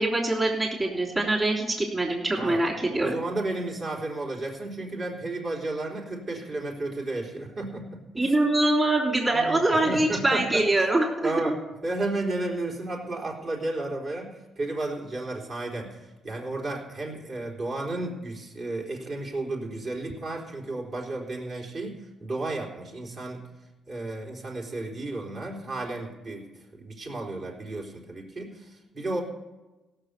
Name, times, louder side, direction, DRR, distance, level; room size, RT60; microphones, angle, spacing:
voice 1, 0.0-3.2 8.2-11.5, right 2 dB, 25° right, -2 dB, 3.4 m, -24 dB
voice 2, 3.0-8.3 9.3-10.6 11.2-23.4 23.9-29.2, right 2 dB, 50° right, -2 dB, 3.7 m, -33 dB
17.0 x 6.8 x 6.7 m, 1.1 s
cardioid pair, 90°, 0 cm